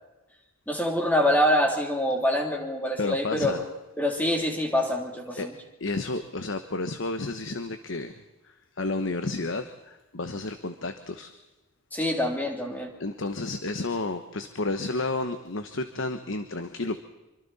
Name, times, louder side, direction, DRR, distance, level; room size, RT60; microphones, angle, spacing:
voice 1, 0.7-3.5 4.0-5.5 11.9-12.9, left 1 dB, 10° left, 1 dB, 3.1 m, -25 dB
voice 2, 3.0-3.6 5.4-5.5 5.8-11.3 13.0-17.0, left 2 dB, 60° left, 9 dB, 1.1 m, -31 dB
26.5 x 25.0 x 4.2 m, 1.1 s
head